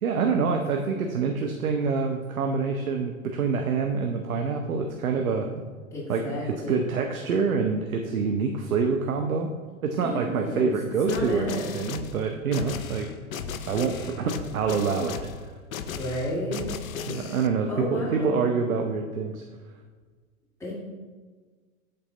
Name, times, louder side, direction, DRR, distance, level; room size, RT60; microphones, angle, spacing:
voice 1, 0.0-5.5 6.1-9.5 9.8-13.1 13.7-15.5 17.1-19.4, right 5 dB, 85° right, 4 dB, 0.7 m, -26 dB
voice 2, 5.9-7.0 10.0-10.7 11.1-11.7 15.9-16.7 17.3-17.4 17.7-18.4 20.6-20.7, equal, 5° left, -7 dB, 1.9 m, -32 dB
sound 1, 11.1-17.5, left 7 dB, 80° left, 0.6 m, -36 dB
7.7 x 4.1 x 3.8 m, 1.4 s
hypercardioid pair, 105°, 41 cm